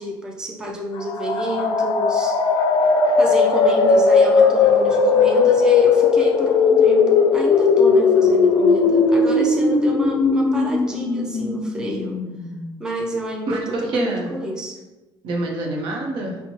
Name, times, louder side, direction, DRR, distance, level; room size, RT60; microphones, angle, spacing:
voice 1, 0.0-2.4 3.2-12.1 12.8-14.8, right 1 dB, 10° right, -1 dB, 0.4 m, -29 dB
sound 1, 1.0-12.7, left 4 dB, 55° left, 0.4 m, -17 dB
voice 2, 13.5-14.3 15.2-16.4, right 2 dB, 70° right, 0 dB, 0.7 m, -26 dB
4.1 x 2.1 x 3.0 m, 1.1 s
cardioid pair, 135°, 9 cm